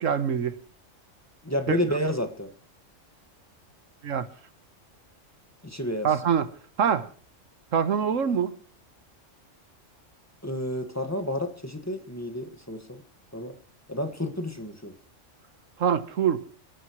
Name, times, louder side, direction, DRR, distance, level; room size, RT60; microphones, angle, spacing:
voice 1, 0.0-0.6 1.7-1.8 4.0-4.3 6.0-6.5 6.8-7.1 7.7-8.5 15.8-16.4, right 7 dB, 85° right, 1.5 m, -24 dB
voice 2, 1.4-2.5 5.6-6.2 10.4-13.0 13.3-13.6 13.9-14.9, left 1 dB, 15° left, 1.7 m, -30 dB
29.5 x 12.0 x 3.1 m
omnidirectional pair, 1.3 m